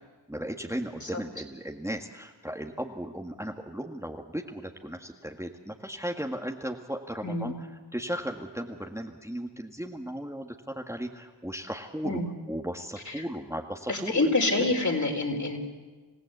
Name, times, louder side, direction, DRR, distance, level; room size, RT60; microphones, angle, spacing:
voice 1, 0.3-7.5 7.9-12.2 12.5-14.3 14.6-14.7, equal, 5° right, 2 dB, 1.8 m, -36 dB
voice 2, 7.2-7.6 12.0-12.3 13.1-13.2 13.9-15.6, left 2 dB, 40° left, 2 dB, 4.5 m, -27 dB
28.0 x 15.5 x 8.1 m, 1.4 s
cardioid pair, 45°, 43 cm